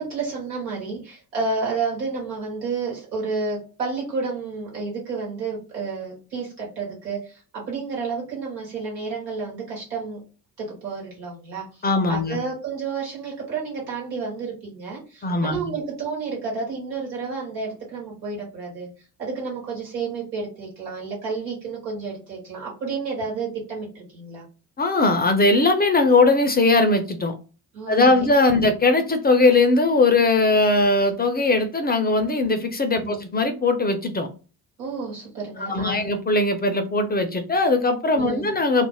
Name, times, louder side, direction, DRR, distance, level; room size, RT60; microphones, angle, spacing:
voice 1, 0.0-10.2 10.6-11.8 12.1-18.9 19.2-24.4 27.7-28.2 28.5-28.7 33.0-33.2 34.8-36.1 38.2-38.5, right 4 dB, 90° right, 1.2 m, -31 dB
voice 2, 11.8-12.4 15.2-15.6 24.8-27.3 27.9-34.3 35.6-38.9, left 2 dB, 20° left, 0.5 m, -20 dB
2.4 x 2.0 x 3.3 m
hypercardioid pair, 50°, 48 cm